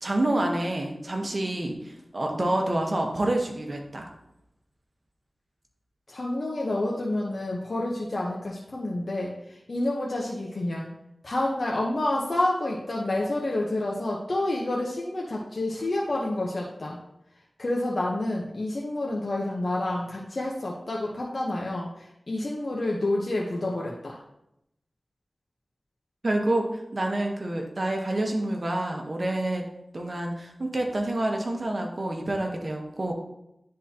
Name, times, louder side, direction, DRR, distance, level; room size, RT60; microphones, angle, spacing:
voice 1, 0.0-4.1 26.2-29.7 29.9-33.1, right 1 dB, 50° right, 2 dB, 1.1 m, -28 dB
voice 2, 6.1-10.9 11.2-17.0 17.6-24.2, left 1 dB, 60° left, -3 dB, 0.9 m, -29 dB
9.9 x 3.8 x 2.8 m, 0.83 s
wide cardioid pair, 50°, 0 cm